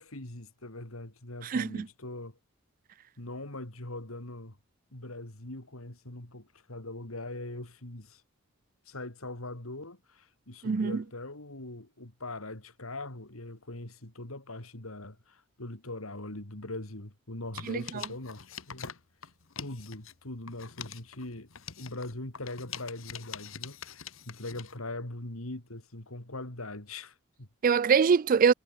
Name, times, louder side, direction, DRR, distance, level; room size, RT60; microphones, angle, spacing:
voice 1, 0.0-2.4 3.2-4.6 4.9-8.2 8.9-18.9 19.2-19.3 19.6-21.5 21.8-27.5, left 2 dB, 85° left, 3.7 m, -41 dB
voice 2, 1.4-1.9 10.6-11.0 17.7-17.8 27.6-28.5, right 6 dB, 40° right, 0.4 m, -23 dB
sound 1, 17.5-20.2 20.5-24.8, left 8 dB, 70° left, 1.5 m, -44 dB
head